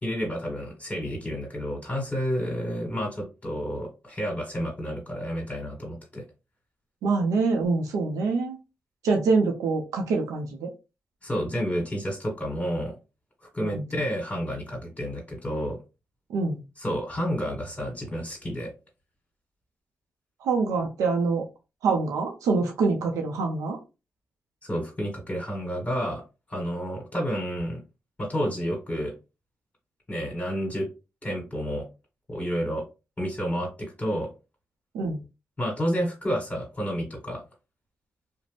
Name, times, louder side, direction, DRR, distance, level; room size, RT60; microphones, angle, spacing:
voice 1, 0.0-6.2 11.2-12.9 13.5-15.8 16.8-18.7 24.6-26.2 26.5-27.8 28.2-29.1 30.1-30.9 31.2-31.9 32.3-32.9 33.2-34.3 35.6-37.4, equal, 30° left, -1 dB, 1.3 m, -30 dB
voice 2, 7.0-8.6 9.0-10.7 13.6-13.8 16.3-16.6 20.4-21.5 21.8-23.8 34.9-35.2, right 4 dB, 90° right, 3 dB, 0.5 m, -25 dB
2.5 x 2.0 x 3.2 m, 0.28 s
supercardioid pair, 45°, 5 cm